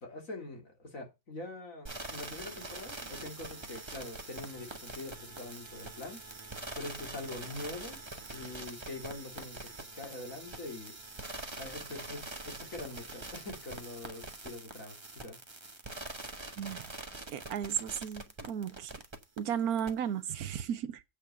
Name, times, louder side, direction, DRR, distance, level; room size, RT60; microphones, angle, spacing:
voice 1, 0.0-6.5 6.8-8.0 8.3-10.9 11.6-15.4, left 2 dB, 60° left, 3.1 m, -44 dB
sound 1, 1.9-19.4 19.8-19.9, right 2 dB, 20° right, 1.3 m, -44 dB
voice 2, 16.6-16.9 17.3-18.9 19.4-21.0, right 9 dB, 80° right, 1.3 m, -34 dB
8.3 x 5.6 x 7.0 m
omnidirectional pair, 1.6 m